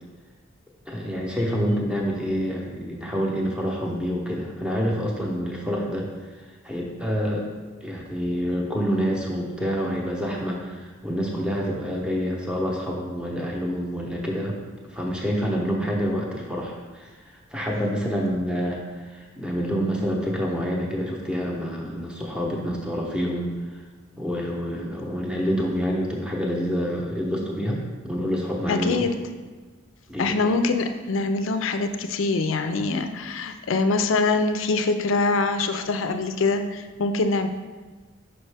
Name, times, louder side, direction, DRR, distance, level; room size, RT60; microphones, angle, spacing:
voice 1, 0.9-6.3 6.6-7.4 7.8-14.5 14.9-23.8 24.2-27.8 28.0-29.0 30.1-30.6, equal, 5° right, -1 dB, 0.7 m, -27 dB
voice 2, 28.7-29.1 30.2-37.5, left 3 dB, 80° left, 8 dB, 0.4 m, -24 dB
5.4 x 5.4 x 3.4 m, 1.4 s
head